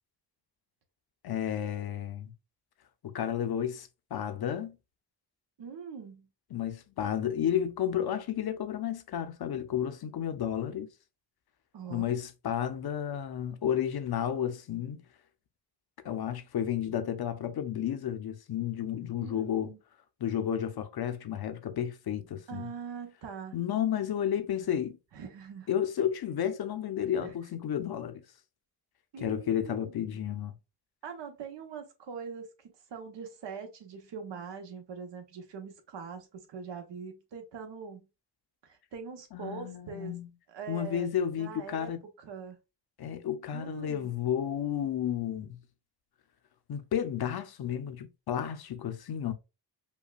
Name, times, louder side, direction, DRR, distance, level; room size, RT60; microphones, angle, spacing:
voice 1, 1.2-2.3 3.0-4.7 6.5-10.9 11.9-15.0 16.0-19.7 20.2-22.7 23.5-25.0 25.7-28.2 29.2-30.6 39.3-40.3 40.7-42.0 43.0-45.6 46.7-49.3, left 9 dB, 60° left, 0.7 m, -32 dB
voice 2, 5.6-6.3 11.7-12.1 19.2-19.8 22.5-23.6 25.1-25.8 27.2-27.3 29.1-30.2 31.0-38.0 38.6-40.1 40.5-41.1 41.4-41.9 42.2-42.6 43.5-44.1, right 6 dB, 75° right, 1.1 m, -42 dB
5.4 x 2.3 x 2.4 m
cardioid pair, 100°, 43 cm